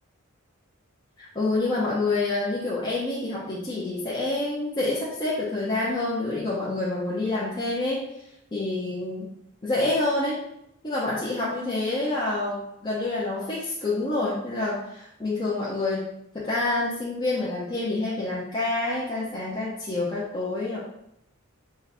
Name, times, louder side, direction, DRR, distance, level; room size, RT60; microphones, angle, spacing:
voice 1, 1.2-8.1 8.5-9.3 9.6-10.4 10.8-16.0 16.3-20.8, left 2 dB, 20° left, -7 dB, 0.6 m, -27 dB
3.9 x 2.3 x 4.1 m, 0.80 s
head